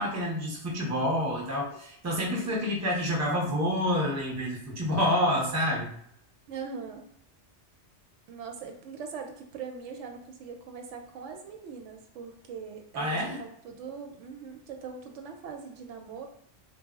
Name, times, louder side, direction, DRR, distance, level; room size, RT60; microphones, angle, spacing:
voice 1, 0.0-5.9 12.9-13.4, left 1 dB, 20° right, -3 dB, 0.5 m, -28 dB
voice 2, 6.5-7.1 8.3-16.3, right 6 dB, 90° right, 3 dB, 0.9 m, -41 dB
2.2 x 2.0 x 3.5 m, 0.69 s
omnidirectional pair, 1.2 m